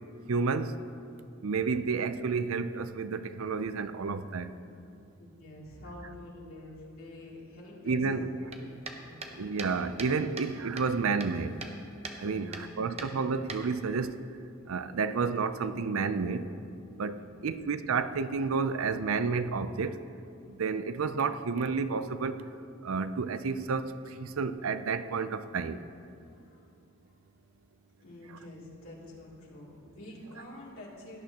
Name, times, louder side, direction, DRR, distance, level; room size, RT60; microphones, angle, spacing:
voice 1, 0.3-0.8 1.4-4.5 7.8-8.3 9.3-11.6 12.2-14.2 14.7-16.5 16.9-20.0 20.5-22.4 22.8-25.8, right 4 dB, 80° right, 12 dB, 0.5 m, -31 dB
voice 2, 5.2-9.4 12.2-12.9 17.1-17.5 26.2-26.7 28.0-31.2, left 1 dB, 90° left, -5 dB, 2.9 m, -48 dB
sound 1, 8.5-10.5 10.8-11.8 12.0-12.2 12.5-12.7 13.0-14.0, right 3 dB, 30° right, 0.8 m, -41 dB
17.0 x 11.0 x 2.9 m, 2.6 s
head